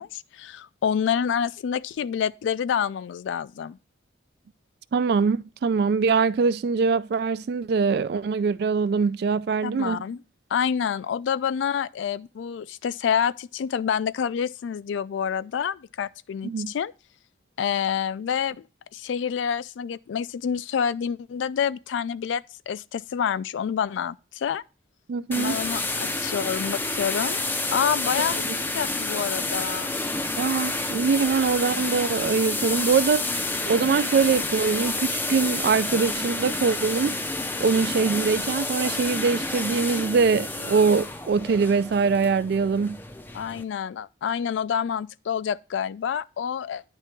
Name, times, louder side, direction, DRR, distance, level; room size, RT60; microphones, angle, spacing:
voice 1, 0.0-3.8 9.6-10.2 10.5-16.9 17.6-18.6 18.9-24.6 25.4-27.4 27.7-29.9 43.3-46.8, left 7 dB, 80° left, 0.3 m, -28 dB
voice 2, 4.9-10.0 16.4-16.7 25.1-25.6 30.4-33.2 33.7-37.1 37.6-43.0, right 5 dB, 55° right, 0.3 m, -23 dB
sound 1, 25.3-43.6, left 2 dB, 10° left, 0.4 m, -29 dB
9.9 x 3.4 x 4.4 m
head